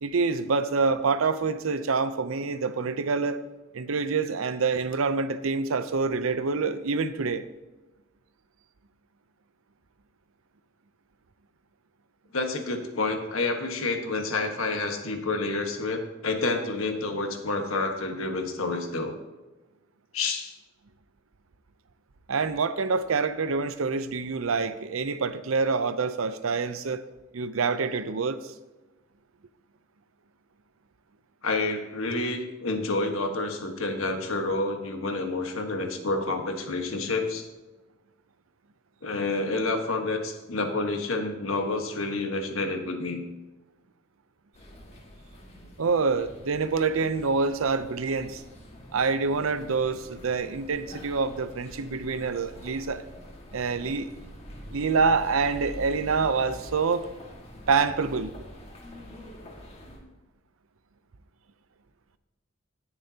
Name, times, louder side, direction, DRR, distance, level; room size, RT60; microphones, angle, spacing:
voice 1, 0.0-3.4 3.7-7.4 22.3-27.0 27.3-28.5 45.8-48.4 48.9-53.0 53.5-54.3 54.7-57.1 57.7-58.3, right 4 dB, 80° right, 0.6 m, -26 dB
voice 2, 12.3-19.2 20.1-20.5 31.4-37.5 39.0-43.2, left 3 dB, 80° left, 1.4 m, -29 dB
sound 1, 44.5-60.0, equal, 30° left, 2.0 m, -46 dB
18.0 x 6.9 x 2.9 m
head